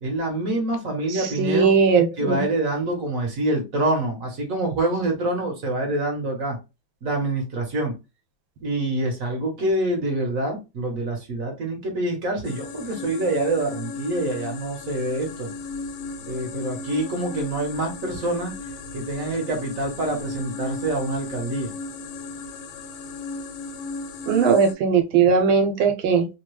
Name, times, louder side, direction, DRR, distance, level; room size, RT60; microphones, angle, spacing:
voice 1, 0.0-1.7 2.2-6.6 7.0-7.9 8.6-15.5 16.3-18.5 18.9-21.7, right 2 dB, 50° right, 2 dB, 1.1 m, -26 dB
voice 2, 1.1-2.5 24.2-26.3, right 5 dB, 85° right, 6 dB, 1.4 m, -19 dB
sound 1, 12.4-24.7, left 3 dB, 85° left, 1.4 m, -35 dB
3.3 x 2.2 x 3.0 m, 0.27 s
omnidirectional pair, 2.2 m